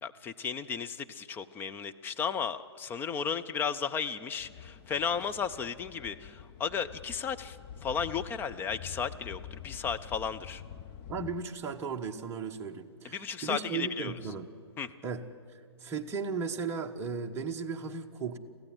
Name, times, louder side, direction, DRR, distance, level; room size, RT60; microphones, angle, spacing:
voice 1, 0.0-10.6 13.0-14.1 14.8-14.9, left 6 dB, 15° left, 9 dB, 0.5 m, -34 dB
sound 1, 4.4-11.4, left 9 dB, 30° left, 1.0 m, -46 dB
voice 2, 11.1-14.5 15.0-15.2 15.8-18.4, right 5 dB, 15° right, 2 dB, 1.2 m, -36 dB
24.0 x 15.5 x 8.9 m, 2.3 s
hypercardioid pair, 130°, 14 cm